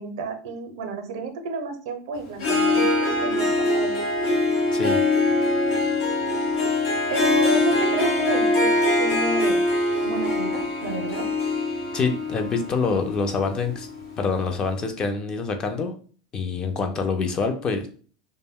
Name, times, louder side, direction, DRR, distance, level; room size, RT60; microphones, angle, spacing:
voice 1, 0.0-4.0 7.1-9.7 10.0-11.3, right 3 dB, 80° right, 7 dB, 0.5 m, -31 dB
Harp, 2.3-14.2, left 2 dB, 75° left, 0.8 m, -23 dB
voice 2, 4.7-5.0 11.9-13.9 14.2-15.9 16.3-17.9, left 4 dB, 30° left, 6 dB, 0.4 m, -26 dB
2.2 x 2.1 x 3.5 m, 0.42 s
supercardioid pair, 130°, 3 cm